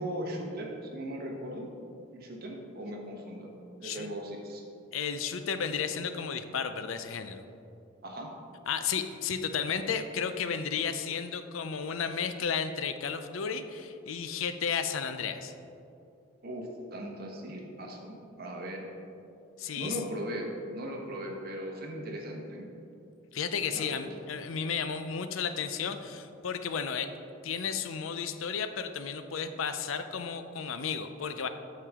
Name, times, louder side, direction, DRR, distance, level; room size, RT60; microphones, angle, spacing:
voice 1, 0.0-1.7 2.1-3.5 3.8-4.6 8.0-8.3 16.4-18.9 19.8-22.7 23.7-24.0, right 1 dB, 50° right, 0 dB, 1.2 m, -38 dB
voice 2, 4.9-7.4 8.7-15.5 19.6-20.0 23.3-27.1 27.4-31.5, left 6 dB, 80° left, 9 dB, 0.5 m, -33 dB
8.6 x 6.7 x 3.6 m, 2.7 s
head